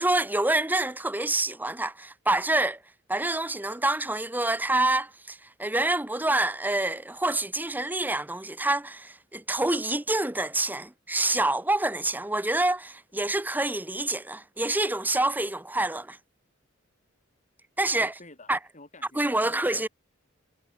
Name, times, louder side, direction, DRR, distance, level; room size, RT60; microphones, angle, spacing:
voice 1, 0.0-2.8 3.1-16.2 17.8-18.1 18.5-18.6 19.1-19.9, right 2 dB, 10° right, 1.2 m, -27 dB
voice 2, 18.0-19.9, left 2 dB, 35° left, 6.0 m, -50 dB
head